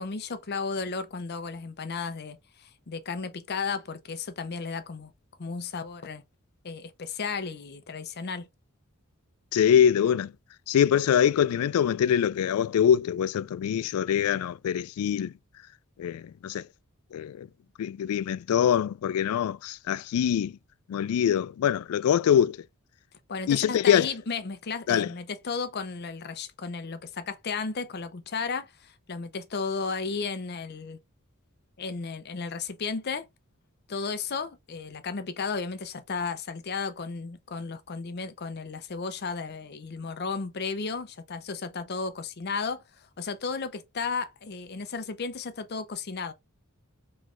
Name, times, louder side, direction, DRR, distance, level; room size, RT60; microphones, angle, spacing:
voice 1, 0.0-5.1 5.4-6.2 6.6-8.5 23.3-31.0 31.8-33.3 33.9-46.3, left 4 dB, 50° left, 0.6 m, -34 dB
voice 2, 9.5-10.3 10.7-15.3 16.0-16.6 17.1-17.5 17.8-20.5 20.9-22.6 23.5-24.1 24.9-25.1, left 9 dB, 90° left, 0.3 m, -24 dB
3.2 x 3.2 x 3.7 m
head